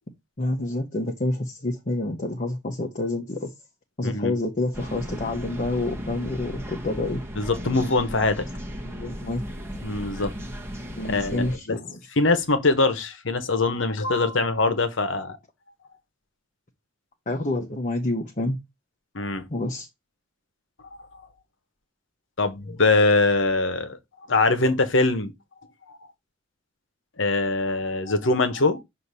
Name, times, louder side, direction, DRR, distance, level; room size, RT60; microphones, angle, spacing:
voice 1, 0.4-3.5 4.0-7.2 8.8-9.4 10.9-12.0 17.3-18.6 19.5-19.9, left 2 dB, 40° left, 0.9 m, -28 dB
voice 2, 4.0-4.3 7.4-8.5 9.8-10.3 11.0-11.8 12.2-15.4 19.1-19.4 22.4-24.0 24.3-25.3 25.9-26.0 27.2-28.8, left 3 dB, 65° left, 1.1 m, -23 dB
sound 1, 4.7-11.6, equal, 15° right, 1.0 m, -36 dB
6.5 x 2.8 x 5.5 m
head